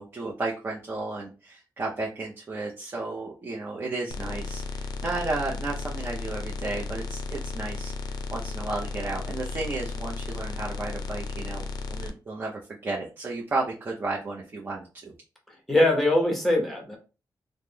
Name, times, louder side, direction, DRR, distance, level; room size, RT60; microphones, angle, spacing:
voice 1, 0.0-7.9 8.3-15.1, right 3 dB, 30° right, -3 dB, 0.7 m, -33 dB
sound 1, 4.1-12.1, left 4 dB, 65° left, 0.4 m, -34 dB
voice 2, 15.7-17.0, left 1 dB, 5° left, 0 dB, 0.9 m, -22 dB
3.0 x 2.1 x 3.6 m, 0.33 s
wide cardioid pair, 160°, 7 cm